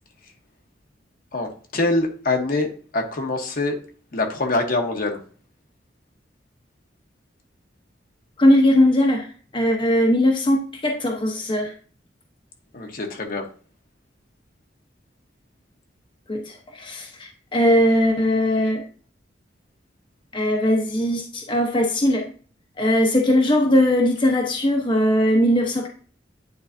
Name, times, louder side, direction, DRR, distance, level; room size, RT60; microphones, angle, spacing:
voice 1, 1.3-3.8 4.1-5.2 12.7-13.4, left 2 dB, 50° left, 3 dB, 1.1 m, -24 dB
voice 2, 8.4-9.3 9.5-11.7 16.3-18.8 20.3-22.2 22.8-25.9, left 1 dB, 30° left, 0 dB, 0.9 m, -19 dB
9.6 x 3.9 x 2.6 m, 0.42 s
head